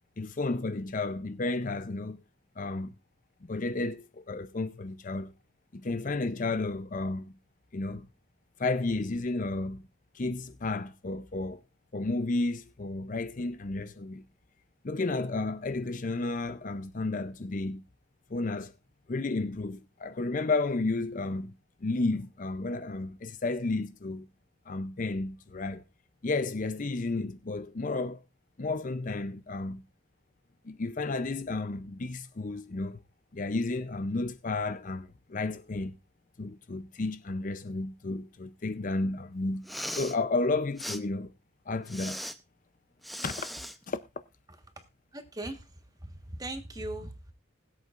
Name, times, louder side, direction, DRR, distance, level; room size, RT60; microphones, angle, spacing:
voice 1, 0.2-2.2 2.6-2.9 3.5-5.3 5.7-7.3 7.7-8.1 8.6-9.8 10.1-11.6 11.9-14.2 14.8-17.8 18.3-18.7 19.1-21.5 21.8-24.3 24.7-25.8 26.2-28.2 28.6-29.8 30.6-33.0 33.3-35.9 36.4-39.7 40.0-41.3 41.7-42.2 43.2-43.5 43.9-44.0, left 3 dB, 40° left, 0.5 m, -32 dB
Respiratory sounds, 39.5-40.2 40.8-41.0 41.9-42.3 43.0-43.8, equal, ahead, 0.6 m, -38 dB
voice 2, 45.1-45.6 46.3-47.3, right 1 dB, 20° right, 1.3 m, -38 dB
20.5 x 8.1 x 2.5 m
head